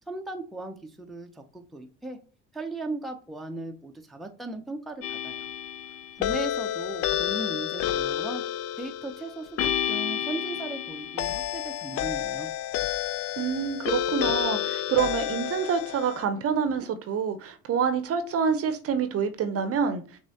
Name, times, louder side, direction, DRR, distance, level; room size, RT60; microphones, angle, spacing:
voice 1, 0.1-2.2 2.5-5.5 6.2-8.4 8.8-12.5, right 2 dB, ahead, 0.7 m, -37 dB
sound 1, 5.0-16.2, left 11 dB, 40° left, 0.4 m, -30 dB
voice 2, 13.4-20.0, right 6 dB, 35° right, 0.8 m, -27 dB
6.0 x 2.4 x 2.8 m
hypercardioid pair, 65°, 38 cm